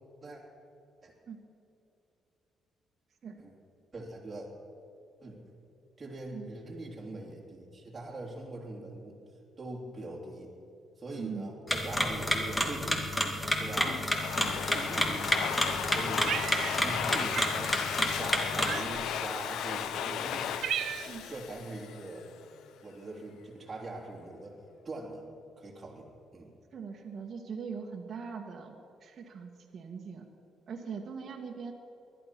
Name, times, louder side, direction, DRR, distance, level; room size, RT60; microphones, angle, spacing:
voice 1, 3.9-4.5 5.2-5.5 6.0-9.2 9.6-10.6 11.0-13.0 13.5-14.0 14.7-16.3 16.8-17.8 18.2-20.5 21.3-22.3 22.8-25.2 25.6-26.5, right 2 dB, 25° right, -3 dB, 2.9 m, -42 dB
voice 2, 11.2-11.5 14.4-14.5 21.1-21.3 26.7-30.3 30.7-31.7, right 6 dB, 50° right, 0 dB, 1.7 m, -41 dB
sound 1, 11.7-18.8, left 1 dB, 15° left, 2.3 m, -30 dB
Domestic sounds home sounds, 13.9-22.3, left 9 dB, 80° left, 0.8 m, -35 dB
Cat, 16.3-17.1 17.4-17.6 18.7-19.2 19.9-20.0 20.3-21.3, right 10 dB, 75° right, 0.4 m, -35 dB
20.0 x 12.0 x 5.9 m, 2.7 s
cardioid pair, 90°, 0 cm